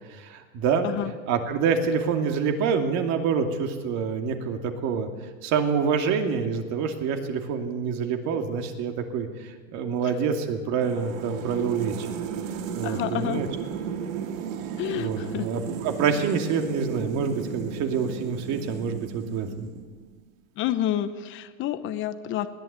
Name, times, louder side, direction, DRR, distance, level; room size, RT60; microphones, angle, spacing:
voice 1, 0.1-0.9 1.3-12.1 12.7-13.5 14.9-19.7, right 6 dB, 40° right, 5 dB, 2.6 m, -27 dB
sound 1, 10.8-20.1, right 8 dB, 70° right, 2.4 m, -35 dB
voice 2, 12.8-13.4 14.8-15.5 20.5-22.5, left 12 dB, 30° left, 10 dB, 1.0 m, -29 dB
21.0 x 16.5 x 8.2 m, 1.5 s
supercardioid pair, 145°, 41 cm